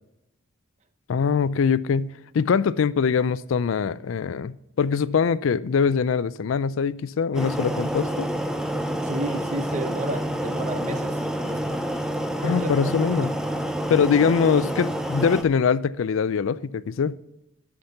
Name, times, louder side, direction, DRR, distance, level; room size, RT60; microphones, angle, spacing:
voice 1, 1.1-8.3 12.4-13.3 13.9-17.2, left 6 dB, 80° left, 0.4 m, -23 dB
sound 1, 7.3-15.4, right 1 dB, 5° right, 0.5 m, -28 dB
voice 2, 9.0-11.7 12.4-13.3, right 1 dB, 35° right, 0.7 m, -32 dB
11.5 x 5.9 x 5.7 m
head